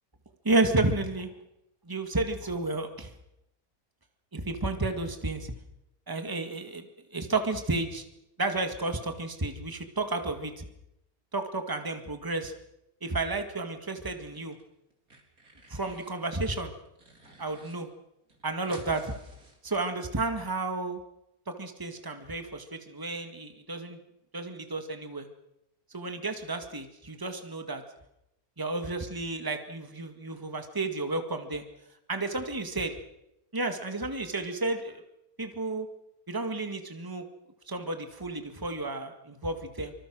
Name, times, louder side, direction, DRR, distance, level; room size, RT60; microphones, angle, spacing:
voice 1, 0.4-1.3 1.9-3.1 4.3-5.5 6.1-6.9 7.1-8.0 8.4-10.7 11.3-12.5 13.0-14.6 15.7-16.7 17.4-17.9 18.4-19.1 19.6-21.0 21.5-24.0 24.3-25.3 25.9-27.8 28.6-31.6 32.1-32.9 33.5-35.0 35.4-35.9 36.3-37.2 37.7-39.9, right 2 dB, 15° right, 6 dB, 1.9 m, -31 dB
sound 1, 14.1-14.6 14.9-16.2 16.6-17.7 18.0-18.1 18.3-20.2, right 2 dB, 70° right, 4.6 m, -54 dB
26.0 x 25.0 x 6.2 m, 0.86 s
omnidirectional pair, 1.6 m